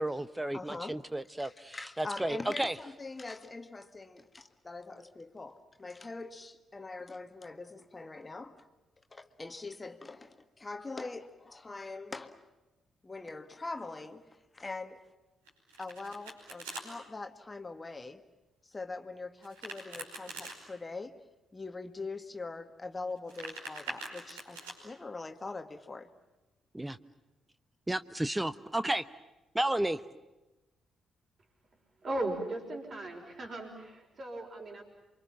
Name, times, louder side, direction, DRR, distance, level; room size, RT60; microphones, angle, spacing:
voice 1, 0.0-2.7 26.7-27.0 27.9-29.0 29.5-30.0, right 1 dB, 10° right, 1.0 m, -32 dB
voice 2, 0.5-1.0 1.4-8.6 9.1-12.5 13.0-15.0 15.8-18.2 18.6-21.2 21.5-26.1 27.1-27.2, left 3 dB, 25° left, 1.8 m, -43 dB
Domestic sounds home sounds, 15.4-16.8 19.4-20.6 23.1-24.7, right 2 dB, 80° right, 5.2 m, -43 dB
voice 3, 32.0-34.8, right 2 dB, 45° right, 5.6 m, -37 dB
29.0 x 25.0 x 7.4 m
figure-of-eight pair, 40°, 0 cm